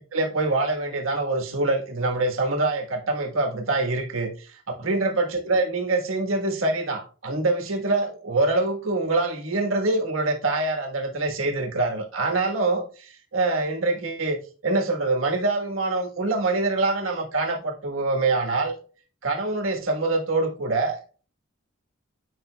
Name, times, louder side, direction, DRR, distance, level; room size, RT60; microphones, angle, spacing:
voice 1, 0.0-18.7 19.2-21.0, right 2 dB, 85° right, 1.3 m, -25 dB
9.5 x 5.3 x 2.2 m
head